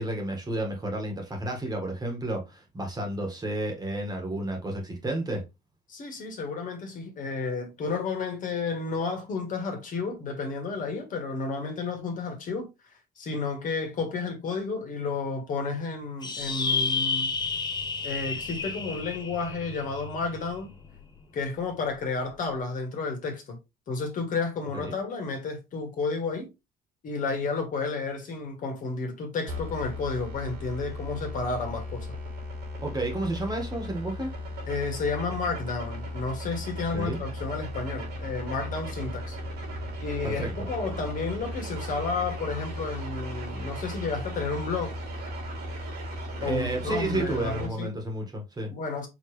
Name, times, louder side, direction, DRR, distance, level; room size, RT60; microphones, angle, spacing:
voice 1, 0.0-5.4 24.7-25.0 32.8-34.3 36.9-37.2 40.2-40.5 46.4-48.7, right 1 dB, 25° right, 1.7 m, -31 dB
voice 2, 5.9-12.7 13.2-17.3 18.0-20.7 21.3-23.6 23.9-26.5 27.0-32.1 34.7-39.4 40.0-44.9 46.4-48.0 48.7-49.1, left 4 dB, 50° left, 1.7 m, -31 dB
sound 1, 16.2-21.0, left 4 dB, 25° left, 0.8 m, -31 dB
sound 2, 29.5-47.7, equal, 80° right, 2.8 m, -36 dB
4.9 x 3.2 x 3.2 m
cardioid pair, 110°, 17 cm